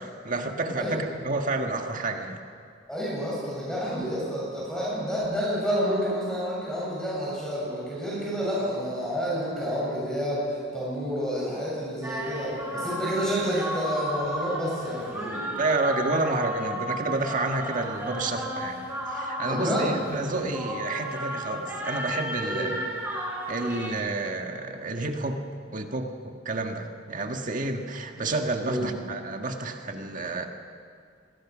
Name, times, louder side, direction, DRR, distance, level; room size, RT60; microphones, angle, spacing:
voice 1, 0.0-2.4 15.6-18.8 19.1-22.7 23.5-25.4 25.7-30.5, right 2 dB, 45° right, 4 dB, 1.7 m, -30 dB
voice 2, 2.9-15.5 19.4-20.0 22.4-22.8 28.6-29.0, equal, 5° left, -6 dB, 7.3 m, -29 dB
sound 1, 12.0-23.9, equal, 10° right, 5.7 m, -33 dB
26.0 x 21.0 x 6.3 m, 2.2 s
head